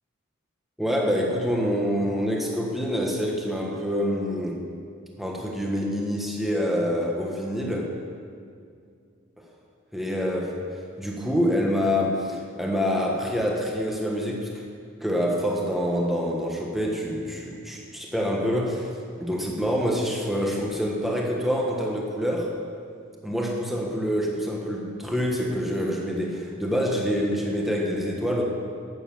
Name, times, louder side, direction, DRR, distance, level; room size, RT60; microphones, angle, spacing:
voice 1, 0.8-4.6 5.2-7.9 9.9-10.5 11.0-14.5 15.0-18.9 19.2-22.5 23.2-28.4, equal, ahead, -1 dB, 1.5 m, -26 dB
12.0 x 8.5 x 7.1 m, 2.3 s
head